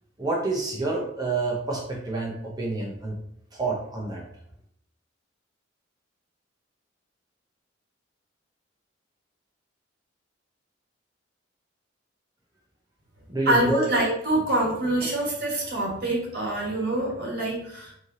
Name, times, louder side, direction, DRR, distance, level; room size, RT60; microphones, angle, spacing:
voice 1, 0.2-3.2 3.5-4.2 13.3-13.9, right 2 dB, 20° right, -3 dB, 0.7 m, -28 dB
voice 2, 13.5-17.9, right 1 dB, 50° right, -3 dB, 1.3 m, -25 dB
3.2 x 2.8 x 3.8 m, 0.71 s
head